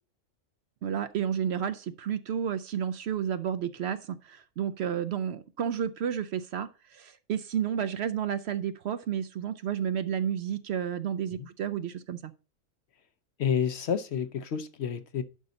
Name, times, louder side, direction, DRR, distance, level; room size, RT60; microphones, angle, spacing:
voice 1, 0.8-12.3, right 8 dB, 65° right, 0.7 m, -31 dB
voice 2, 13.4-15.2, left 7 dB, 60° left, 0.9 m, -29 dB
11.0 x 5.3 x 3.9 m
omnidirectional pair, 1.3 m